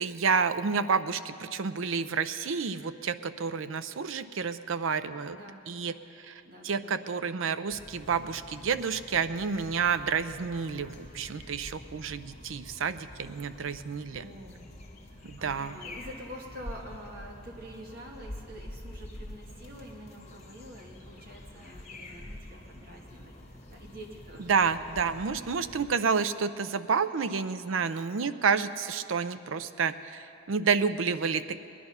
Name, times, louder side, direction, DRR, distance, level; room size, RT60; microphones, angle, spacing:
voice 1, 0.0-5.4 5.7-14.3 15.2-15.8 24.5-31.6, right 5 dB, 75° right, 12 dB, 0.5 m, -29 dB
voice 2, 5.3-5.6 6.4-7.0 14.2-14.8 15.1-24.5, equal, 45° right, -1 dB, 1.9 m, -47 dB
sound 1, 7.7-25.9, left 1 dB, 35° left, 1.6 m, -47 dB
19.5 x 11.0 x 5.7 m, 2.7 s
head